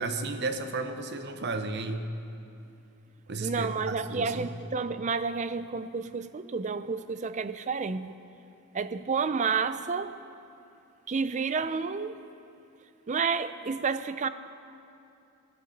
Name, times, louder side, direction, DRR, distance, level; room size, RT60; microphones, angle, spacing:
voice 1, 0.0-2.1 3.3-4.5, right 3 dB, 50° right, 8 dB, 0.9 m, -33 dB
voice 2, 3.4-8.2 8.7-10.2 11.1-12.2 13.1-14.3, right 5 dB, 35° right, 13 dB, 0.4 m, -30 dB
23.0 x 10.5 x 4.0 m, 2.7 s
head